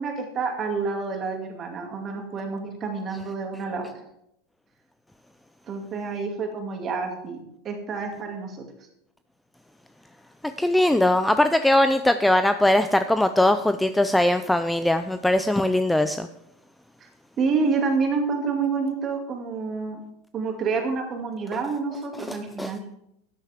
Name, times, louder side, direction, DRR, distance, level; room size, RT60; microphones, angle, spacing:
voice 1, 0.0-3.9 5.7-7.4 7.6-8.6 17.0-17.1 17.4-20.0 20.3-22.8, right 4 dB, 30° right, 3 dB, 2.4 m, -28 dB
voice 2, 10.6-16.3 22.2-22.9, left 1 dB, 5° left, 10 dB, 0.4 m, -21 dB
13.0 x 10.0 x 3.6 m, 0.79 s
supercardioid pair, 145°, 0 cm